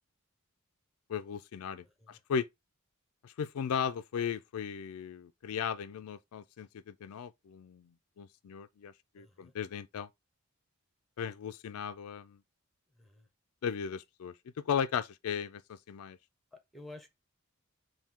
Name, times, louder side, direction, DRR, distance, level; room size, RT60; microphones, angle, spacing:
voice 1, 1.1-2.5 3.2-7.9 8.2-10.1 11.2-12.4 13.6-14.3 14.7-16.2, left 7 dB, 85° left, 0.4 m, -36 dB
voice 2, 1.8-2.2 9.2-9.5 12.9-13.3 16.5-17.1, left 2 dB, ahead, 0.7 m, -52 dB
4.2 x 2.7 x 3.5 m
head